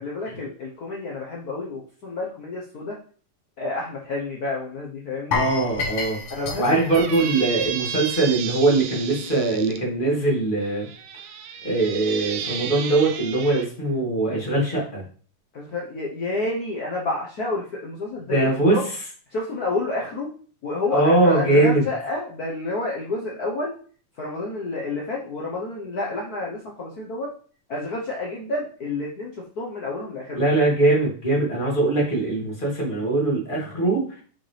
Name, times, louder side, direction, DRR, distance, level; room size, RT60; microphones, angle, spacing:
voice 1, 0.0-3.0 3.6-5.4 6.3-6.8 9.1-9.3 15.5-18.8 19.3-20.3 20.6-23.7 24.2-27.3 27.7-30.5, left 2 dB, 80° left, -2 dB, 0.8 m, -29 dB
sound 1, 5.3-8.3 8.6-8.8 9.2-9.3, left 4 dB, 55° left, 1.9 m, -30 dB
voice 2, 5.3-6.2 6.6-10.9 11.6-15.0 18.3-18.8 20.9-21.8 30.3-34.0, right 2 dB, 20° left, -4 dB, 2.2 m, -21 dB
Squeak, 6.7-9.8 10.6-13.7, right 8 dB, 75° right, 1.5 m, -33 dB
6.5 x 6.0 x 3.4 m, 0.43 s
omnidirectional pair, 3.4 m